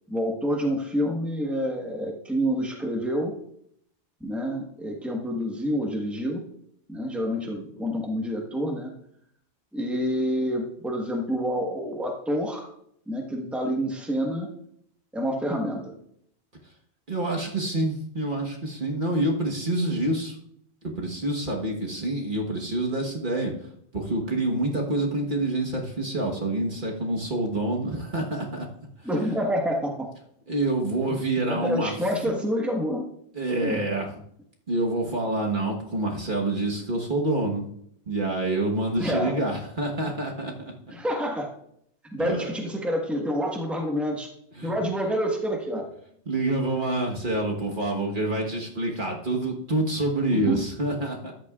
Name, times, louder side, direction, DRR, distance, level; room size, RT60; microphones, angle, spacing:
voice 1, 0.1-3.3 4.2-6.4 6.9-8.9 9.7-12.7 13.1-14.5 15.1-16.0 29.0-30.1 31.5-33.1 33.6-33.8 39.0-39.4 40.9-41.5 42.1-44.3 44.6-45.9 50.3-50.7, equal, ahead, 0 dB, 1.3 m, -28 dB
voice 2, 17.1-20.4 20.8-23.5 23.9-28.7 29.0-29.1 30.5-31.9 33.3-34.1 34.7-37.6 38.1-40.7 42.2-42.5 44.6-44.7 46.2-51.3, right 2 dB, 50° right, 0 dB, 1.5 m, -27 dB
13.5 x 10.0 x 2.4 m, 0.70 s
omnidirectional pair, 1.1 m